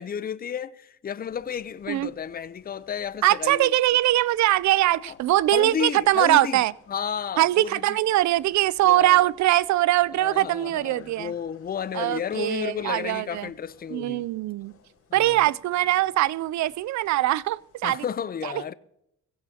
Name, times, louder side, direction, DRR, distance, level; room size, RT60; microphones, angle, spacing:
voice 1, 0.0-3.7 5.0-5.2 5.5-6.6 6.9-8.0 8.8-9.3 10.2-14.3 15.1-15.4 17.8-18.7, left 8 dB, 30° left, 0.6 m, -32 dB
sound 1, 1.2-18.1, left 5 dB, 50° left, 5.8 m, -59 dB
voice 2, 3.2-6.7 7.4-11.3 11.9-13.5 13.9-14.7 15.1-18.0 18.4-18.5, right 15 dB, 65° right, 0.5 m, -22 dB
16.0 x 16.0 x 2.9 m
cardioid pair, 90°, 30 cm